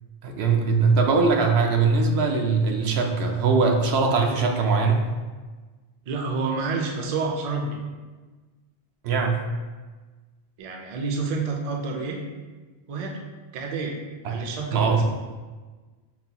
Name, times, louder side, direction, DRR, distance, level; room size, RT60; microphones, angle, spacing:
voice 1, 0.2-5.0 9.0-9.5 14.2-14.4 14.7-15.0, right 4 dB, 80° right, 2 dB, 0.8 m, -21 dB
voice 2, 6.1-7.8 10.6-12.2 12.9-13.2 13.5-14.0 14.3-15.0, right 4 dB, 50° right, 1 dB, 0.5 m, -29 dB
5.5 x 2.2 x 2.8 m, 1.3 s
omnidirectional pair, 1.0 m